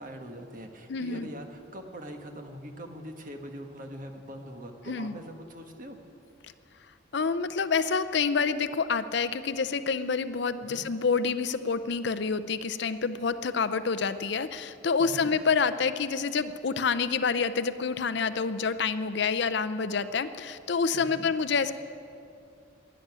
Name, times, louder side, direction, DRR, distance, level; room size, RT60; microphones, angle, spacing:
voice 1, 0.0-6.0 10.6-10.9 15.0-15.3 20.9-21.2, equal, 40° right, 4 dB, 1.4 m, -42 dB
voice 2, 0.9-1.3 4.9-5.2 7.1-21.7, left 5 dB, 55° left, 12 dB, 0.5 m, -28 dB
13.0 x 10.5 x 10.0 m, 2.6 s
head